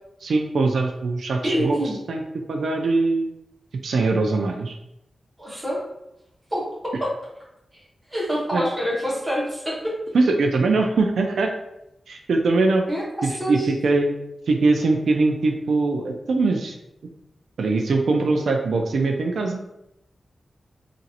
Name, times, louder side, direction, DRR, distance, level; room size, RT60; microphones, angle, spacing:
voice 1, 0.2-1.8 2.1-2.2 2.5-3.3 3.8-4.8 8.5-8.7 10.1-11.5 12.1-12.8 13.2-14.2 14.5-16.8 17.6-19.6, right 3 dB, 85° right, 3 dB, 0.3 m, -21 dB
voice 2, 1.4-1.9 5.4-5.8 6.5-6.6 7.7-7.8 8.1-9.9 12.9-13.7, equal, 10° right, -6 dB, 1.1 m, -26 dB
2.9 x 2.5 x 2.8 m, 0.85 s
wide cardioid pair, 145°, 0 cm